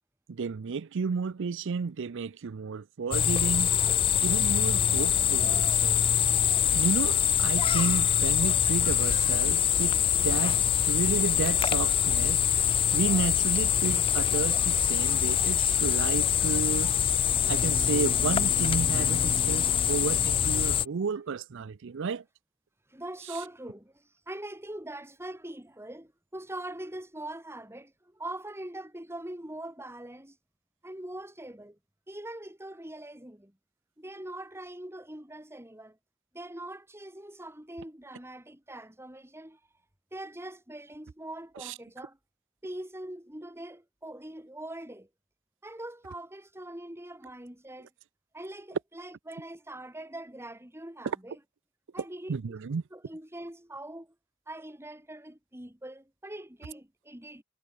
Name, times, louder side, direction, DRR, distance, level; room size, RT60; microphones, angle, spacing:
voice 1, 0.3-3.8 4.2-6.0 6.7-12.4 12.9-16.9 17.5-22.2 41.6-41.7 51.1-51.2 52.3-52.8, right 5 dB, 55° right, 0.5 m, -32 dB
sound 1, 3.1-20.8, left 9 dB, 25° left, 0.3 m, -24 dB
voice 2, 22.9-30.4 30.8-31.8 32.1-33.5 34.0-36.0 36.3-39.6 40.1-42.2 42.6-45.1 45.6-47.9 48.3-51.4 51.9-52.3 52.9-54.1 54.5-57.4, right 1 dB, 10° right, 3.1 m, -42 dB
head